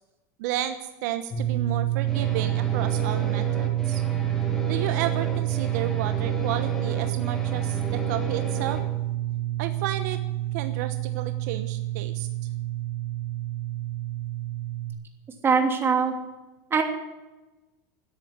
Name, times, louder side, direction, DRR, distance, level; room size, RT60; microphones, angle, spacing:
voice 1, 0.4-4.0 4.7-8.8 9.6-10.2 10.5-12.3, right 12 dB, 70° right, 9 dB, 1.1 m, -32 dB
sound 1, 1.3-14.9, right 15 dB, 30° left, 2.4 m, -28 dB
sound 2, 2.1-8.8, equal, 5° left, 3.8 m, -34 dB
voice 2, 15.4-16.1 16.7-16.8, right 5 dB, 25° right, 3 dB, 2.9 m, -21 dB
13.0 x 10.0 x 9.9 m, 1.1 s
supercardioid pair, 120°, 10 cm